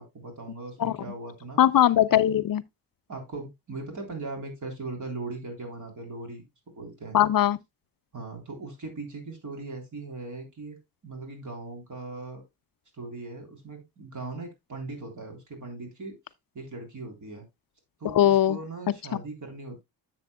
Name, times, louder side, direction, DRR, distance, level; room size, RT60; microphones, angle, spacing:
voice 1, 0.0-1.6 2.1-2.2 3.1-6.4 6.8-7.2 8.1-12.4 12.9-16.2 16.5-17.4 18.0-19.8, right 3 dB, 45° right, 3.5 m, -39 dB
voice 2, 1.6-2.6 7.1-7.6 18.1-18.6, left 11 dB, 55° left, 0.5 m, -20 dB
10.5 x 7.6 x 2.2 m
wide cardioid pair, 135°, 41 cm